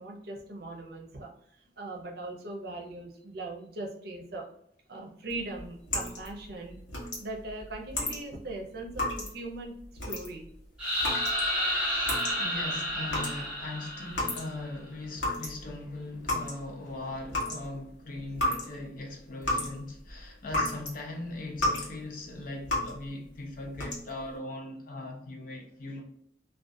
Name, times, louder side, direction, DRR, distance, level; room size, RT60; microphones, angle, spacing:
voice 1, 0.0-4.4 4.9-6.8 7.2-9.7 10.0-10.5, right 2 dB, 60° right, 0.6 m, -40 dB
sound 1, 5.3-14.8 15.0-20.9 21.3-22.0 22.2-23.1 23.6-24.3, left 1 dB, 90° left, 1.0 m, -34 dB
sound 2, 10.8-14.6, equal, 5° right, 1.0 m, -31 dB
voice 2, 11.8-26.0, left 2 dB, 50° left, 0.6 m, -40 dB
2.4 x 2.3 x 2.5 m
head